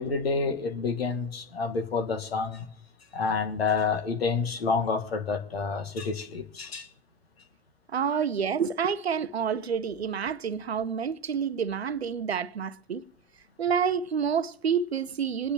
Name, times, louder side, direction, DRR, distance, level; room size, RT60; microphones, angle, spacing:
voice 1, 0.0-2.6 3.1-6.9, left 5 dB, 75° left, 1.6 m, -28 dB
voice 2, 7.9-13.0 13.6-15.5, right 7 dB, 85° right, 0.6 m, -28 dB
27.0 x 10.0 x 3.0 m
figure-of-eight pair, 90°, 31 cm